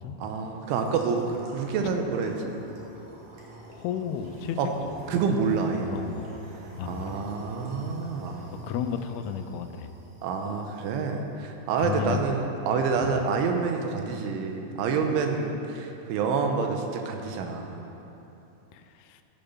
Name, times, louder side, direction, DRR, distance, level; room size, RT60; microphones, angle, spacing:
voice 1, 0.2-2.5 4.6-4.7 5.1-5.9 6.9-8.5 10.2-17.8, right 5 dB, 85° right, 4 dB, 3.3 m, -28 dB
sound 1, 0.6-11.1, right 2 dB, 55° right, 2.2 m, -45 dB
voice 2, 3.7-4.6 4.9-5.0 5.9-6.3 6.8-7.2 8.6-9.9 11.8-12.4 13.0-13.2 18.7-19.2, left 8 dB, 90° left, 8 dB, 3.0 m, -33 dB
14.5 x 7.0 x 5.6 m, 2.9 s
omnidirectional pair, 5.4 m